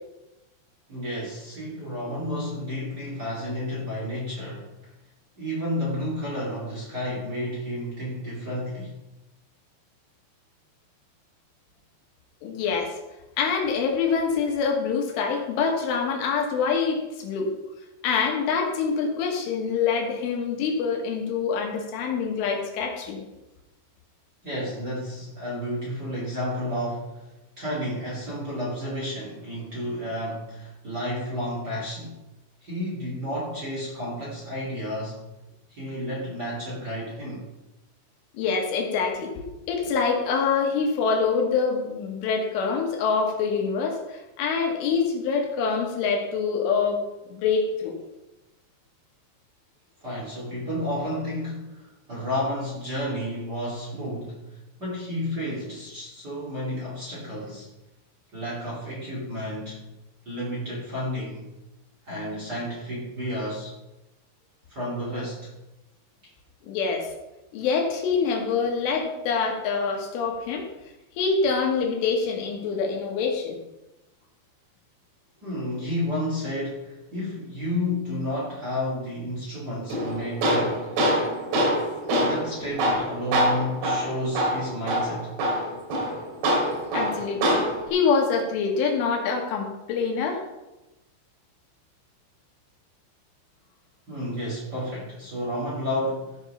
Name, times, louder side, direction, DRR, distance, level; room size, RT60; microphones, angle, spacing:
voice 1, 0.9-4.7 5.4-8.9 24.4-27.2 27.6-32.2 32.6-35.3 35.7-37.5 50.0-54.4 54.8-57.7 58.3-59.8 60.2-61.5 62.1-63.7 64.7-65.5 75.4-80.8 82.2-85.3 94.1-96.4, left 1 dB, 25° right, -6 dB, 2.7 m, -31 dB
voice 2, 12.4-12.9 13.4-17.5 18.0-23.2 38.3-47.0 47.3-48.0 66.7-67.1 67.5-70.7 71.2-73.6 86.9-87.6 87.9-90.4, left 5 dB, 80° left, 1 dB, 4.0 m, -25 dB
Tools, 79.9-87.9, equal, 60° right, 4.0 m, -25 dB
14.5 x 5.4 x 5.6 m, 0.98 s
omnidirectional pair, 5.6 m